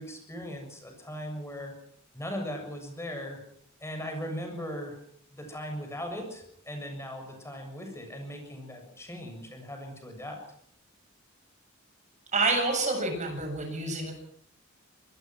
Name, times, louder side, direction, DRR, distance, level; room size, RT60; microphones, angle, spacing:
voice 1, 0.0-1.7 2.1-3.4 3.8-5.0 5.3-10.4, equal, 15° left, 3 dB, 7.0 m, -38 dB
voice 2, 12.3-14.1, right 3 dB, 35° right, 4 dB, 7.6 m, -28 dB
26.0 x 21.0 x 6.1 m, 0.66 s
head